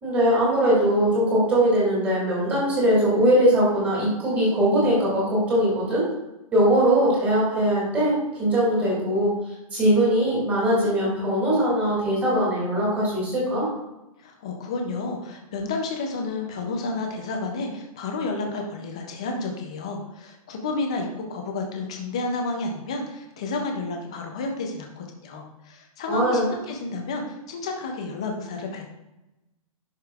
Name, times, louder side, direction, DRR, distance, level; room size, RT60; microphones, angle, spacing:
voice 1, 0.0-6.1 6.5-9.3 9.7-13.7 26.1-26.5, right 1 dB, 10° right, -6 dB, 2.0 m, -21 dB
voice 2, 14.2-28.8, left 3 dB, 10° left, 2 dB, 0.3 m, -31 dB
10.5 x 5.0 x 2.3 m, 0.95 s
hypercardioid pair, 175°, 19 cm